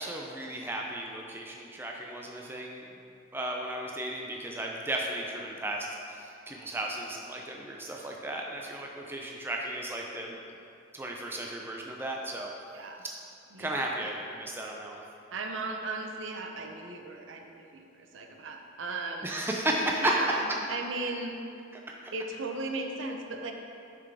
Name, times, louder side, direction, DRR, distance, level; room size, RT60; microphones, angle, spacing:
voice 1, 0.0-2.8 3.3-10.4 10.9-12.5 13.0-13.1 13.6-15.0 19.2-20.2 21.7-21.8, right 1 dB, 10° right, -1 dB, 0.4 m, -34 dB
voice 2, 13.5-14.0 15.3-17.9 18.1-19.3 20.0-21.4 22.1-23.5, right 3 dB, 75° right, 3 dB, 0.6 m, -36 dB
6.3 x 5.9 x 3.5 m, 2.6 s
head